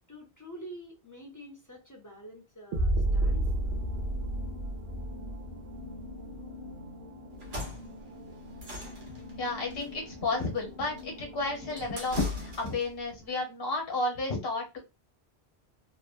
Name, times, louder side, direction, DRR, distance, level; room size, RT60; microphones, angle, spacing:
voice 1, 0.1-3.5, equal, 20° left, 0.6 m, -47 dB
sound 1, 2.7-6.7, right 1 dB, 90° right, 0.9 m, -30 dB
sound 2, 3.0-12.6, left 1 dB, 40° right, 0.7 m, -46 dB
sound 3, 7.3-13.0, left 2 dB, 70° right, 1.2 m, -41 dB
voice 2, 9.4-14.8, left 2 dB, 65° left, 1.3 m, -32 dB
3.0 x 2.1 x 2.4 m
omnidirectional pair, 1.1 m